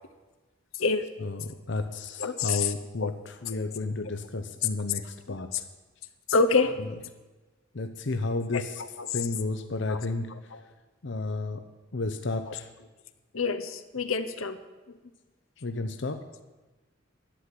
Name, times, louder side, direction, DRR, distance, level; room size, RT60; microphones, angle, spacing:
voice 1, 1.2-5.5 7.7-8.8 9.1-10.3 11.0-11.6 11.9-12.7 14.9-15.0 15.6-16.2, left 3 dB, 60° left, 7 dB, 0.7 m, -32 dB
voice 2, 2.2-2.7 3.0-3.1 6.3-6.8 8.5-8.6 9.0-9.1 9.9-10.0 10.5-10.6 12.5-12.6 13.3-14.6, left 4 dB, 80° left, 10 dB, 0.9 m, -26 dB
11.5 x 7.5 x 9.8 m, 1.2 s
head